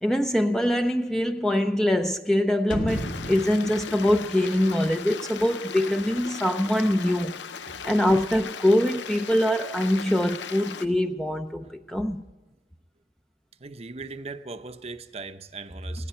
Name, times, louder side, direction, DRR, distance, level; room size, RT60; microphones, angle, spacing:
voice 1, 0.0-7.3 7.8-12.2, left 1 dB, 5° left, 0.6 m, -23 dB
sound 1, 2.7-5.5 5.8-5.9, equal, 50° left, 1.6 m, -35 dB
Stream, 2.9-10.9, left 6 dB, 85° left, 0.7 m, -38 dB
voice 2, 13.6-16.1, right 3 dB, 35° right, 0.8 m, -39 dB
19.5 x 16.5 x 4.4 m
head